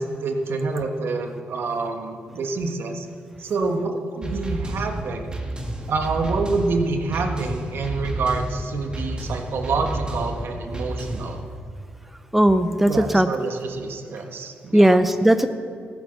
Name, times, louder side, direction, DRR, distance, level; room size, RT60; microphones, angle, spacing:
voice 1, 0.0-3.1 3.4-5.3 5.9-11.4 12.9-15.0, right 3 dB, 65° right, 4 dB, 1.5 m, -27 dB
sound 1, 4.2-11.4, right 1 dB, 20° right, 2.0 m, -31 dB
voice 2, 12.3-13.3 14.7-15.5, right 1 dB, 5° right, 10 dB, 0.6 m, -17 dB
14.5 x 9.0 x 6.6 m, 2.4 s
cardioid pair, 90°, 4 cm